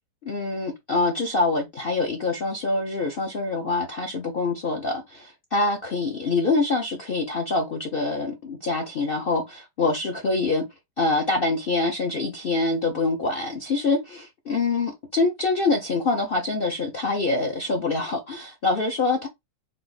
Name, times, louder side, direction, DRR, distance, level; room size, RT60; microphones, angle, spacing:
voice 1, 0.2-10.6 11.0-19.3, left 3 dB, 55° left, 0.6 m, -25 dB
3.5 x 2.5 x 3.9 m
omnidirectional pair, 1.8 m